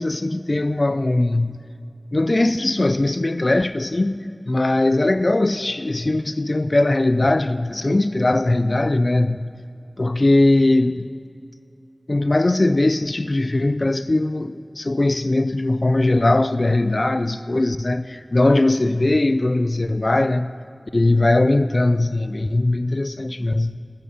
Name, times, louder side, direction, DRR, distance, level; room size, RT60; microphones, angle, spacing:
voice 1, 0.0-1.6 2.1-9.5 10.0-11.1 12.1-20.5 20.9-23.8, left 2 dB, 55° left, 12 dB, 0.4 m, -20 dB
19.0 x 10.0 x 5.0 m, 2.5 s
wide cardioid pair, 40°, 0 cm